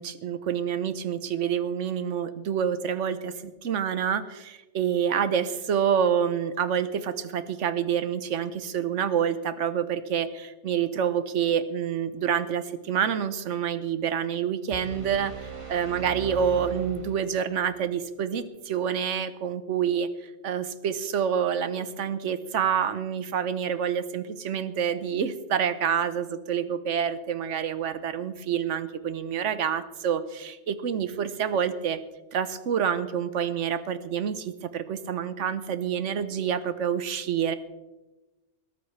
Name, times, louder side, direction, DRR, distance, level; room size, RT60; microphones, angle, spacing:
voice 1, 0.0-20.1 20.4-32.0 32.3-37.5, right 8 dB, 80° right, 13 dB, 1.2 m, -27 dB
sound 1, 14.7-17.7, right 6 dB, 25° right, 1.6 m, -40 dB
21.5 x 12.5 x 3.3 m, 1.1 s
omnidirectional pair, 1.2 m